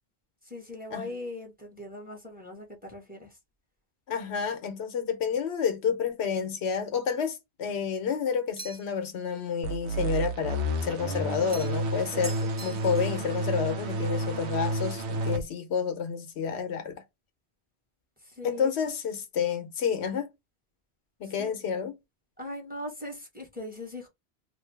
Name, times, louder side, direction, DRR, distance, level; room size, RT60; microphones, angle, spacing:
voice 1, 0.5-3.3 12.1-12.3 18.4-18.7 21.2-21.5 22.4-24.1, left 1 dB, 10° right, 1.0 m, -40 dB
voice 2, 4.1-17.0 18.4-20.3 21.2-22.0, left 6 dB, 80° left, 0.9 m, -30 dB
sound 1, 8.6-9.1 11.5-11.9 12.2-13.2, right 4 dB, 25° right, 0.5 m, -43 dB
sound 2, 9.6-15.4, right 1 dB, 80° right, 1.0 m, -30 dB
2.6 x 2.5 x 3.2 m
omnidirectional pair, 1.1 m